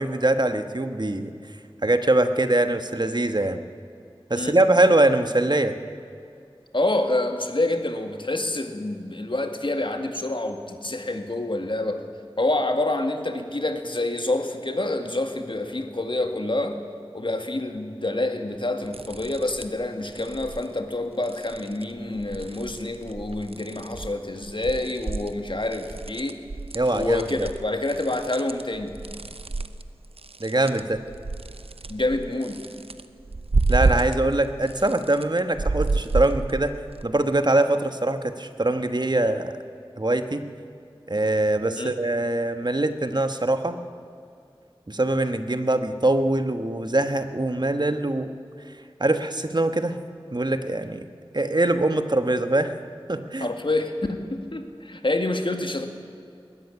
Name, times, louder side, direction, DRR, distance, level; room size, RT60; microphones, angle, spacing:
voice 1, 0.0-1.3 1.8-3.6 4.3-5.7 26.7-27.2 30.4-31.0 33.7-36.7 37.0-39.6 40.0-40.4 41.1-43.8 44.9-48.3 49.0-50.0 50.3-51.0 51.3-52.7 53.1-53.5, right 2 dB, 50° right, 9 dB, 1.3 m, -23 dB
voice 2, 6.7-12.1 12.4-16.8 17.1-26.4 26.9-29.0 31.9-32.6 41.8-41.9 53.4-55.9, left 2 dB, 60° left, 6 dB, 1.9 m, -27 dB
sound 1, 18.8-19.8 20.1-20.7 21.2-21.8 22.2-24.1 24.4-34.4 34.6-37.0, right 3 dB, 85° right, 0.8 m, -30 dB
20.5 x 13.0 x 9.9 m, 2.5 s
wide cardioid pair, 40°, 10 cm